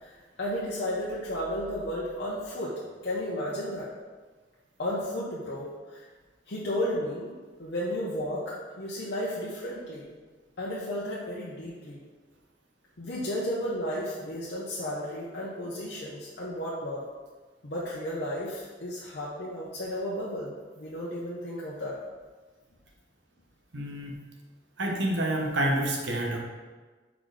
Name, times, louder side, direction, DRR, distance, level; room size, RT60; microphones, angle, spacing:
voice 1, 0.0-2.7 3.0-3.9 4.8-6.0 6.5-7.3 7.6-10.0 10.6-12.0 13.0-17.0 17.6-22.0, equal, 60° left, -7 dB, 0.9 m, -33 dB
voice 2, 23.7-24.1 24.8-26.4, right 1 dB, 80° right, 0 dB, 1.0 m, -28 dB
4.8 x 4.0 x 4.9 m, 1.4 s
head